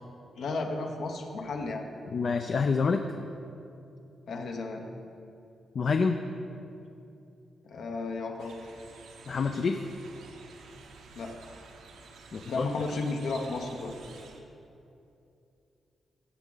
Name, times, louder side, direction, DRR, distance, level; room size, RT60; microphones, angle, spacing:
voice 1, 0.3-1.8 4.3-4.8 7.6-8.6 11.1-11.4 12.5-13.9, left 3 dB, 65° left, 3 dB, 1.0 m, -33 dB
voice 2, 2.1-3.0 5.7-6.2 9.3-9.8 12.3-12.7, left 5 dB, 45° left, 6 dB, 0.4 m, -27 dB
sound 1, 8.4-14.4, right 4 dB, 85° right, 0.9 m, -51 dB
15.5 x 6.1 x 3.9 m, 2.7 s
wide cardioid pair, 135°, 0 cm